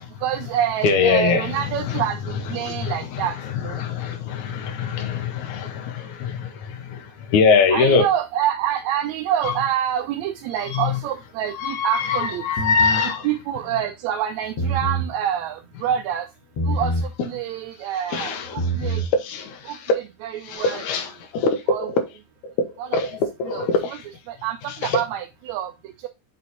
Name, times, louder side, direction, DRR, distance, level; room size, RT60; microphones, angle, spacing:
voice 1, 0.2-3.8 7.7-12.4 13.2-16.3 16.7-19.0 19.7-20.8 21.7-21.9 22.8-23.0 23.4-24.0 24.3-25.7, right 10 dB, 80° right, 1.9 m, -27 dB
voice 2, 0.8-1.5 1.9-2.0 2.6-3.2 3.7-8.1 9.4-9.5 10.7-10.9 11.6-13.3 18.1-18.6 18.9-19.9 20.5-22.0 22.4-22.5 22.9-24.0 24.8-25.0, left 4 dB, 80° left, 2.3 m, -23 dB
sound 1, 12.6-13.1 14.4-15.1 16.6-17.1 18.4-19.1, right 2 dB, 55° left, 2.6 m, -25 dB
6.3 x 4.3 x 4.0 m
omnidirectional pair, 3.3 m